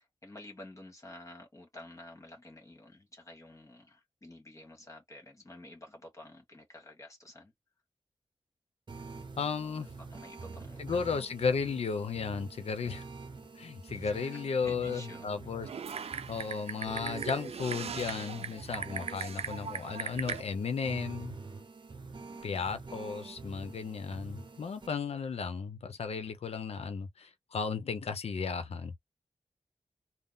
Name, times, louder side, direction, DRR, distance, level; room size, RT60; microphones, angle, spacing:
voice 1, 0.0-7.5 9.7-11.0 13.9-15.3 15.6-15.8 22.2-22.6, left 1 dB, 30° left, 1.4 m, -51 dB
sound 1, 8.9-24.9, right 4 dB, 50° right, 0.7 m, -46 dB
voice 2, 9.4-9.9 10.8-13.0 13.6-15.7 16.3-21.4 22.4-29.0, left 5 dB, 90° left, 0.7 m, -34 dB
Typing, 15.6-20.4, right 6 dB, 85° right, 0.4 m, -39 dB
3.6 x 2.0 x 4.0 m
cardioid pair, 55°, 10 cm